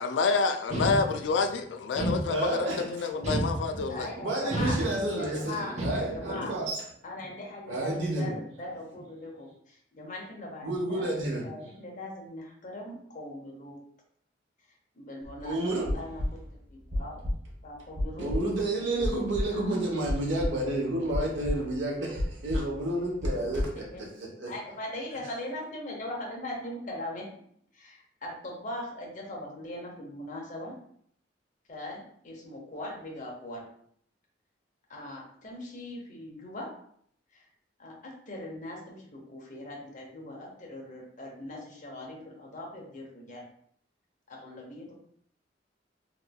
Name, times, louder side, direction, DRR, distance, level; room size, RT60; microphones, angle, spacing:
voice 1, 0.0-4.1 6.3-6.5, left 4 dB, 70° left, 0.3 m, -28 dB
sound 1, 0.7-1.5 2.0-2.7 3.2-4.0 4.5-5.3 5.8-6.4, right 1 dB, 35° right, 0.9 m, -31 dB
voice 2, 2.3-3.1 4.2-6.8 7.7-8.3 10.6-11.5 15.4-16.0 18.2-24.5, right 1 dB, 85° right, 0.9 m, -30 dB
voice 3, 3.9-4.8 5.1-6.6 7.0-11.1 11.4-13.8 14.9-16.2 16.7-17.2 17.6-18.3 19.5-19.8 23.2-24.0 24.5-27.3 27.7-30.7 31.7-33.6 34.9-36.7 37.3-37.4 37.8-43.4 44.3-44.9, left 1 dB, 45° left, 0.8 m, -40 dB
sound 2, 15.2-15.4 15.7-16.6 16.9-17.5 18.0-18.6 19.0-19.8 20.1-20.7 21.1-21.9 22.2-23.7, left 1 dB, 70° right, 1.3 m, -32 dB
3.2 x 3.1 x 2.2 m
head